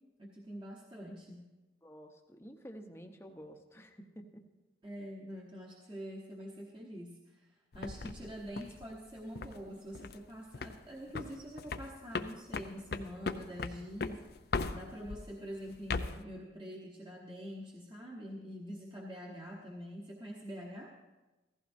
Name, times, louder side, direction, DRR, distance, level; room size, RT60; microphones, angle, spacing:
voice 1, 0.2-1.4 4.8-14.2 14.7-20.9, equal, 25° right, -3 dB, 1.1 m, -45 dB
voice 2, 1.8-4.4, equal, 15° left, 4 dB, 0.8 m, -50 dB
sound 1, 7.7-9.6 9.9-10.3 10.5-10.9 11.1-15.2 15.7-16.2, left 4 dB, 55° left, 0.5 m, -38 dB
15.5 x 14.5 x 2.6 m, 1.1 s
head